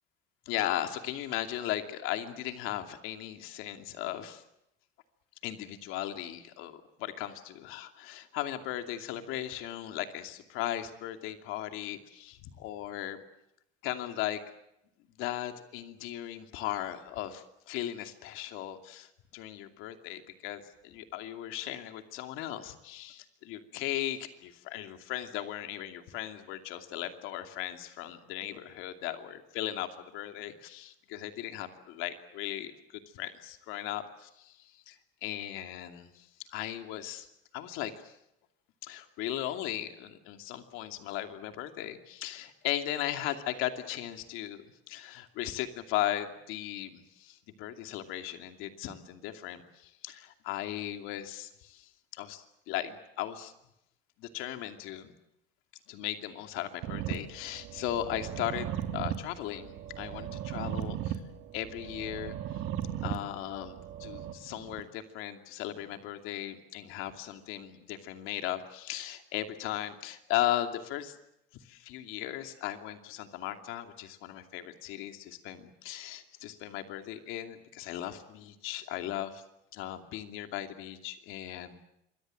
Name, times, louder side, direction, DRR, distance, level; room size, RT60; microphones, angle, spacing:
voice 1, 0.5-4.4 5.4-13.2 13.8-14.4 15.2-35.0 35.2-37.3 37.5-38.1 38.8-53.5 54.2-55.1 55.9-58.7 58.9-61.2 61.5-62.3 63.0-71.2 71.6-79.4 79.7-81.8, left 13 dB, 80° left, 6 dB, 2.7 m, -37 dB
sound 1, 56.8-64.8, right 11 dB, 70° right, 2.6 m, -37 dB
27.0 x 23.5 x 7.8 m, 0.82 s
cardioid pair, 150°, 21 cm